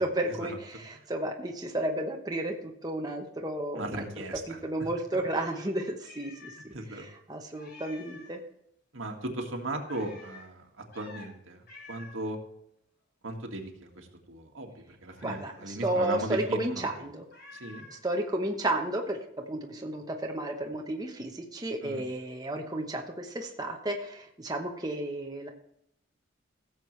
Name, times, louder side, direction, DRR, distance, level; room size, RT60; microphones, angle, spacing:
voice 1, 0.0-4.1 4.5-8.4 15.2-17.2 17.9-19.2 19.5-25.5, right 1 dB, 20° right, 1 dB, 1.0 m, -32 dB
voice 2, 3.8-4.4 6.7-7.1 8.9-12.4 13.2-14.7 15.0-16.9 17.5-17.9 21.8-22.0, right 1 dB, 75° right, 2 dB, 2.0 m, -37 dB
Meow, 5.3-6.8 7.1-7.2 7.5-8.4 9.9-10.5 10.9-11.3 11.7-12.3 15.1-15.7 17.3-18.0, left 3 dB, 50° left, 4.0 m, -50 dB
16.5 x 7.5 x 3.3 m, 0.73 s
head